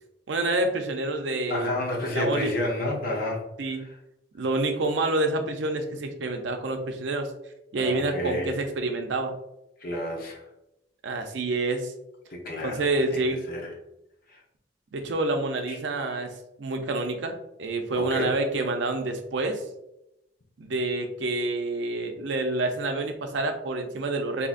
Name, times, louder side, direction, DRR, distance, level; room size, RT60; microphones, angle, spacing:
voice 1, 0.3-1.8 2.1-2.5 3.6-3.8 4.4-7.3 7.7-9.3 11.0-11.9 12.6-13.4 14.9-16.3 16.6-19.6 20.6-24.5, right 2 dB, 70° right, 5 dB, 0.5 m, -28 dB
voice 2, 1.5-3.4 7.8-8.5 9.8-10.4 12.3-13.2 13.5-13.6 15.7-15.8 18.0-18.3, left 1 dB, 50° left, -1 dB, 0.8 m, -30 dB
3.9 x 2.8 x 2.4 m, 0.87 s
head